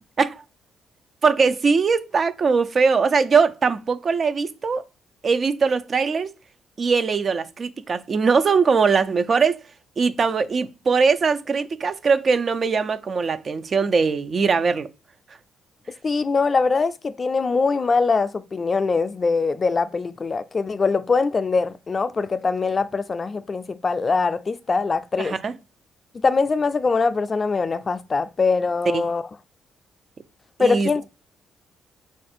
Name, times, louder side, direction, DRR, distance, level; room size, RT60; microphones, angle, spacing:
voice 1, 1.2-4.8 5.2-6.3 6.8-9.6 10.0-14.9 25.2-25.5 28.9-29.1 30.6-31.0, right 5 dB, 45° right, 0.4 m, -21 dB
voice 2, 16.0-25.3 26.2-29.2 30.6-31.0, left 4 dB, 35° left, 0.3 m, -22 dB
4.3 x 2.5 x 4.2 m
cardioid pair, 90°, 0 cm